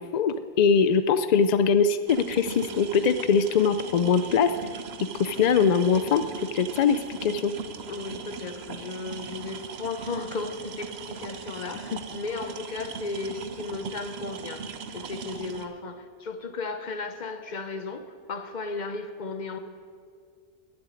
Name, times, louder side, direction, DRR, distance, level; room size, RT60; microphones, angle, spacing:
voice 1, 0.1-4.5 5.2-6.2 6.5-7.5, left 6 dB, 65° left, 11 dB, 0.4 m, -22 dB
sound 1, 2.1-15.6, right 6 dB, 65° right, 1.0 m, -39 dB
voice 2, 7.9-14.7 14.9-19.6, left 3 dB, 45° left, 8 dB, 0.9 m, -35 dB
10.5 x 7.7 x 9.6 m, 2.1 s
omnidirectional pair, 1.2 m